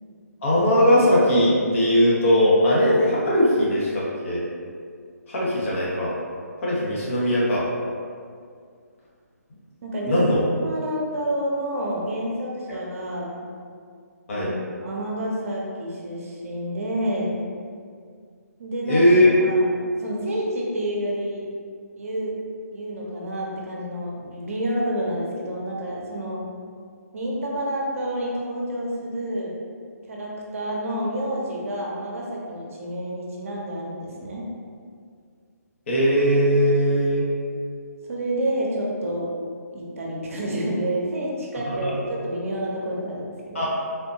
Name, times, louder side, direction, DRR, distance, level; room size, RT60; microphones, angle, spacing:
voice 1, 0.4-4.4 5.3-6.1 6.6-7.7 10.0-10.4 14.3-14.5 18.9-19.3 35.9-37.3 41.7-41.9 43.5-43.7, equal, 50° left, -6 dB, 1.0 m, -19 dB
voice 2, 9.8-10.3 10.6-13.5 14.3-14.5 14.8-17.4 18.6-19.1 19.4-19.7 20.0-21.4 21.9-22.4 22.7-26.5 27.1-29.6 30.1-34.4 38.0-39.3 39.7-43.7, right 1 dB, 55° right, -3 dB, 0.7 m, -29 dB
3.5 x 2.6 x 2.7 m, 2.1 s
figure-of-eight pair, 145°, 9 cm